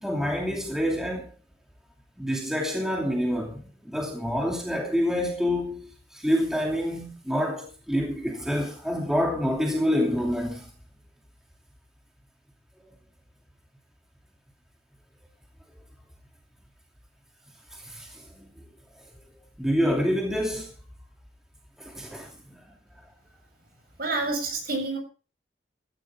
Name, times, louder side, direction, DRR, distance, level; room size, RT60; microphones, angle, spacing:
voice 1, 0.0-1.3 2.2-10.7 17.7-18.5 19.6-20.7 21.8-22.7, equal, 5° right, 2.7 m, -27 dB
voice 2, 24.0-25.0, right 3 dB, 55° right, 7.4 m, -28 dB
15.5 x 15.0 x 3.6 m
head